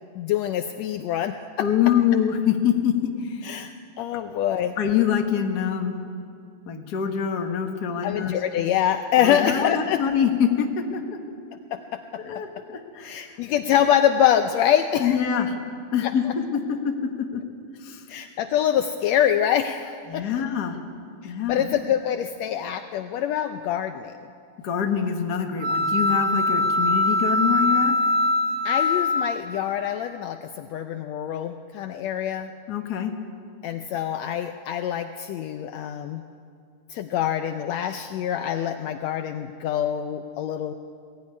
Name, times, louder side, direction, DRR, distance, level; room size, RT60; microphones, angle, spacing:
voice 1, 0.2-1.7 3.4-3.7 4.0-4.7 8.0-10.0 11.7-12.0 13.0-15.2 16.0-16.1 18.1-20.2 21.2-24.1 28.6-32.5 33.6-36.2 36.9-40.7, left 10 dB, 90° left, 8 dB, 1.5 m, -25 dB
voice 2, 1.6-3.4 4.8-6.0 6.6-8.3 9.2-11.2 12.2-13.2 15.0-15.6 15.9-17.4 17.8-18.0 20.1-20.8 21.2-21.7 24.6-27.9 32.7-33.1, left 8 dB, 50° left, 4 dB, 1.2 m, -25 dB
sound 1, 25.6-29.7, left 2 dB, 60° right, 4.4 m, -22 dB
20.5 x 15.0 x 9.6 m, 2.4 s
omnidirectional pair, 3.8 m